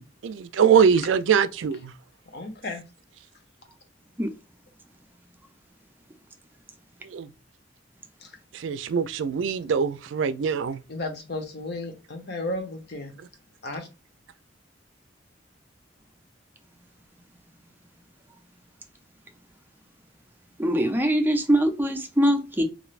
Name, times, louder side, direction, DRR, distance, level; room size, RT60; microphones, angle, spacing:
voice 1, 0.2-1.9 7.0-7.3 8.5-10.8, right 7 dB, 80° right, 0.4 m, -22 dB
voice 2, 2.3-2.8 8.2-8.3 10.9-13.1 13.6-13.9, left 2 dB, 60° left, 0.8 m, -33 dB
voice 3, 20.6-22.6, equal, 10° right, 0.5 m, -22 dB
3.2 x 2.6 x 2.4 m
head